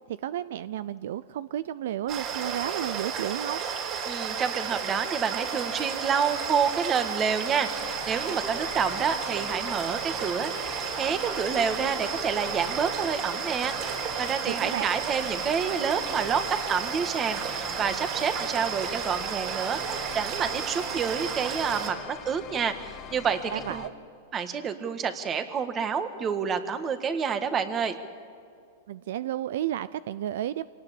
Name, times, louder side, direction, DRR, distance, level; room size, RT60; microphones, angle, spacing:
voice 1, 0.1-3.6 14.5-14.9 23.5-23.9 28.9-30.7, right 11 dB, 70° right, 16 dB, 0.5 m, -32 dB
sound 1, 2.1-21.9, right 7 dB, 40° right, 4.7 m, -33 dB
voice 2, 4.1-23.8 24.3-28.0, right 6 dB, 25° right, 9 dB, 1.8 m, -29 dB
sound 2, 7.7-23.9, left 9 dB, 35° left, 1.8 m, -44 dB
25.5 x 18.5 x 8.7 m, 2.4 s
hypercardioid pair, 135°, 0 cm